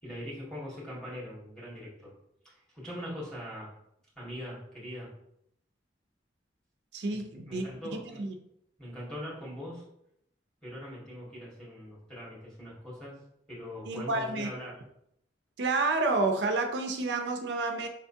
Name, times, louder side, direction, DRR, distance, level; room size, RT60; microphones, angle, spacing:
voice 1, 0.0-2.1 2.4-3.7 4.1-5.2 7.1-8.3 8.8-9.8 10.6-13.2 13.5-14.8, equal, 5° left, -7 dB, 1.7 m, -42 dB
voice 2, 6.9-7.6 8.2-8.4 13.9-14.5 15.6-17.9, right 3 dB, 75° right, 4 dB, 0.5 m, -29 dB
5.0 x 3.4 x 2.7 m, 0.76 s
head